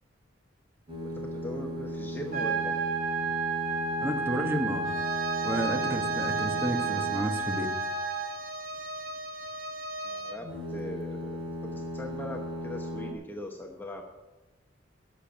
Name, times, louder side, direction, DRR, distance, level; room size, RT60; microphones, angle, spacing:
sound 1, 0.9-7.7 10.4-13.1, equal, 30° right, 2.9 m, -37 dB
voice 1, 1.0-2.8 10.0-14.1, left 1 dB, 10° left, 1 dB, 1.0 m, -41 dB
sound 2, 2.3-8.3, right 5 dB, 50° right, 3.1 m, -31 dB
voice 2, 4.0-4.9 5.4-7.7, right 1 dB, 10° right, 4 dB, 1.3 m, -31 dB
Bowed string instrument, 4.8-10.5, right 1 dB, 85° right, 1.4 m, -37 dB
11.5 x 6.9 x 8.8 m, 1.1 s
head